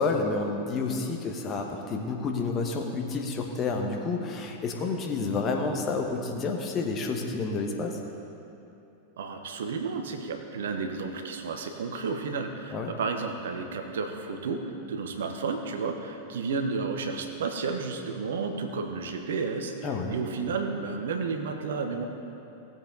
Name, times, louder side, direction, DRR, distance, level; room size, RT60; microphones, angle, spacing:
voice 1, 0.0-8.0 12.7-12.9 19.8-20.2, left 3 dB, 30° left, 2 dB, 1.3 m, -29 dB
voice 2, 9.2-22.0, right 4 dB, 60° right, 5 dB, 1.0 m, -32 dB
18.5 x 7.5 x 3.9 m, 2.8 s
figure-of-eight pair, 90°, 0 cm